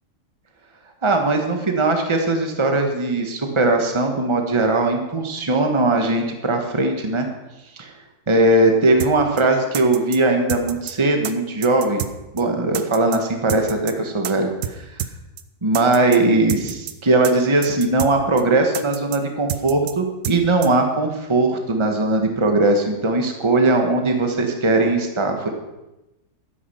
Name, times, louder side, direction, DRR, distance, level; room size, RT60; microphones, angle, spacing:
voice 1, 1.0-7.3 7.8-7.9 8.3-12.0 12.3-14.8 15.6-25.5, right 2 dB, 20° right, 4 dB, 1.4 m, -19 dB
sound 1, 9.0-9.1 9.4-9.5 9.7-10.2 10.5-10.9 11.2-11.3 11.6-12.1 12.4-12.5 12.7-13.2 13.5-13.9 14.2-14.3 14.6-14.7 15.0-15.1 15.4-15.5 15.7-16.2 16.5-16.9 17.2-17.3 17.6-18.1 18.4-18.5 18.7-19.2 19.5-19.9 20.2-20.4 20.6-20.7, right 10 dB, 80° right, 1.3 m, -28 dB
12.5 x 9.9 x 5.7 m, 0.98 s
omnidirectional pair, 1.8 m